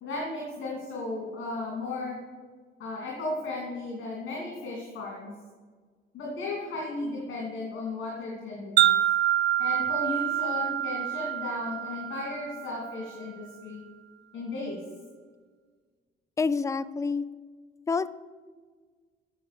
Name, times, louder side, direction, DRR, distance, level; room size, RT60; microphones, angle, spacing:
voice 1, 0.0-2.2 2.8-5.3 6.1-9.0 9.6-13.8 14.3-14.8, left 2 dB, 75° left, -3 dB, 2.6 m, -35 dB
Wind chime, 8.8-13.1, right 11 dB, 55° right, 0.4 m, -27 dB
voice 2, 16.4-17.2 17.9-18.1, left 4 dB, 15° left, 16 dB, 0.4 m, -27 dB
8.4 x 7.1 x 6.7 m, 1.5 s
cardioid pair, 90°, 20 cm